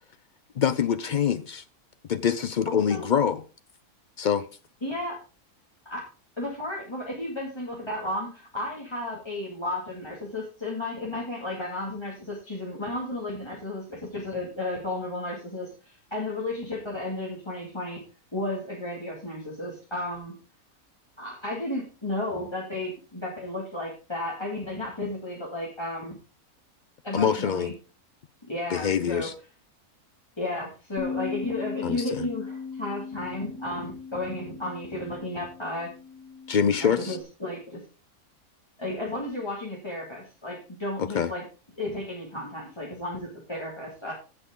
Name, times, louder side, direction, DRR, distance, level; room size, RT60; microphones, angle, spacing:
voice 1, 0.6-1.6 2.1-3.4 4.2-4.4 27.1-27.7 28.7-29.3 31.8-32.3 36.5-37.2 41.0-41.3, left 7 dB, 85° left, 0.4 m, -25 dB
voice 2, 2.7-3.1 4.8-5.2 5.9-6.0 6.4-18.0 18.3-20.3 21.2-26.2 27.0-27.7 28.5-29.3 30.4-35.9 36.8-37.8 38.8-41.4 41.8-44.1, left 1 dB, 20° left, 2.4 m, -33 dB
Bass guitar, 31.0-37.2, left 5 dB, 55° left, 1.7 m, -38 dB
15.5 x 6.1 x 3.8 m
omnidirectional pair, 1.6 m